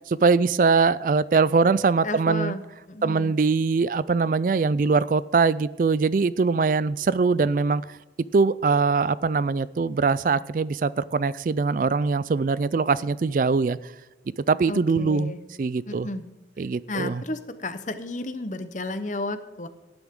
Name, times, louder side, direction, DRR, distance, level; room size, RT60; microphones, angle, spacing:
voice 1, 0.1-2.5 3.0-8.0 8.3-13.8 14.5-16.1 16.6-17.2, right 4 dB, 50° right, 18 dB, 0.3 m, -22 dB
voice 2, 2.0-2.6 2.9-3.3 14.7-15.4 15.9-16.2 16.9-19.7, left 2 dB, 45° left, 11 dB, 0.9 m, -32 dB
18.0 x 10.5 x 3.7 m, 1.1 s
head